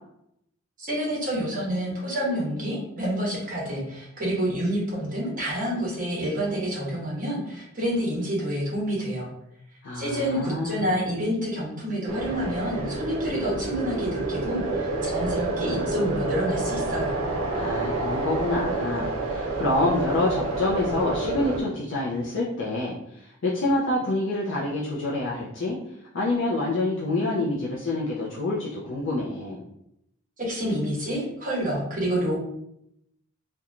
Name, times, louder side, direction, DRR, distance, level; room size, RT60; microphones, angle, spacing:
voice 1, 0.8-9.3 9.9-17.2 30.4-32.4, equal, 40° right, -4 dB, 1.0 m, -28 dB
voice 2, 9.8-10.8 17.5-25.8 26.1-29.6, left 2 dB, 55° left, -6 dB, 0.4 m, -27 dB
sound 1, 12.1-21.6, right 2 dB, 75° right, 0.5 m, -29 dB
2.9 x 2.2 x 2.4 m, 0.78 s
head